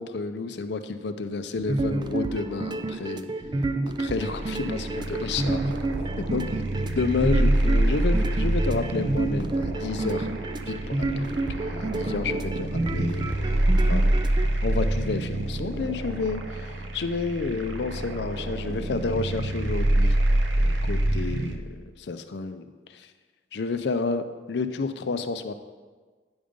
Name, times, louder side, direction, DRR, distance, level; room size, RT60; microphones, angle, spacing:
voice 1, 0.0-3.2 4.0-5.6 6.2-6.6 7.0-10.3 10.7-14.1 14.6-20.2 20.6-21.7 22.0-23.1 23.5-25.5, left 4 dB, 65° left, 9 dB, 0.5 m, -30 dB
sound 1, 1.6-14.5, right 2 dB, 25° right, 0.3 m, -30 dB
sound 2, 4.2-21.6, right 1 dB, 90° right, 0.8 m, -26 dB
8.8 x 5.1 x 5.2 m, 1.4 s
head